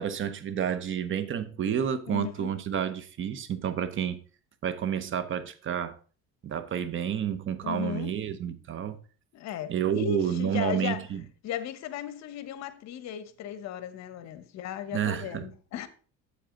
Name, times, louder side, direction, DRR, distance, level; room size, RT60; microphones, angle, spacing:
voice 1, 0.0-4.2 4.6-6.0 6.4-9.0 9.7-11.2 14.9-15.5, right 9 dB, 40° right, 0.9 m, -30 dB
voice 2, 2.1-2.5 7.6-8.2 9.3-11.0 11.4-15.9, left 10 dB, 60° left, 1.1 m, -36 dB
8.1 x 7.8 x 3.8 m
cardioid pair, 125°, 30 cm